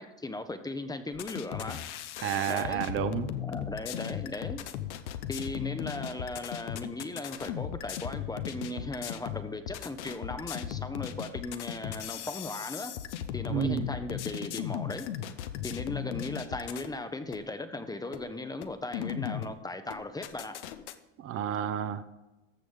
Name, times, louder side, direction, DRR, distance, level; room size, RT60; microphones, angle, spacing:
voice 1, 0.0-1.8 2.5-2.8 3.4-4.6 5.3-12.9 13.3-15.1 15.6-20.6, left 2 dB, 10° left, 9 dB, 0.7 m, -37 dB
sound 1, 1.1-16.9 17.3-17.4 18.1-18.2 18.6-19.5 19.9-20.9, left 10 dB, 85° left, 0.9 m, -37 dB
voice 2, 2.2-3.3 13.5-13.9 21.2-22.0, right 9 dB, 40° right, 11 dB, 0.8 m, -30 dB
14.5 x 6.4 x 3.7 m, 1.1 s
supercardioid pair, 105°, 34 cm